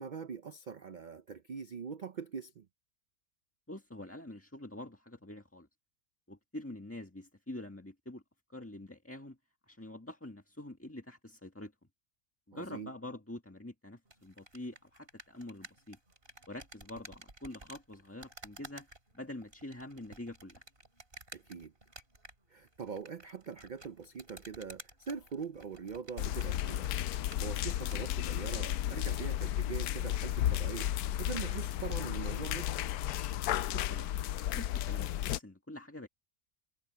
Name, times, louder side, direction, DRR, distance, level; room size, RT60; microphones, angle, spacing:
voice 1, 0.0-2.7 12.5-12.9 21.3-21.7 22.5-26.9 27.4-30.9 31.2-32.7, right 6 dB, 80° right, 0.4 m, -42 dB
voice 2, 3.7-5.7 6.3-8.2 8.5-9.4 9.7-11.7 12.5-16.0 16.5-18.9 19.1-20.6 33.7-34.1 34.5-36.1, left 1 dB, 10° left, 1.6 m, -46 dB
sound 1, 14.0-28.1, right 2 dB, 35° right, 4.0 m, -54 dB
sound 2, 26.2-35.4, left 12 dB, 90° left, 1.1 m, -33 dB
omnidirectional pair, 1.6 m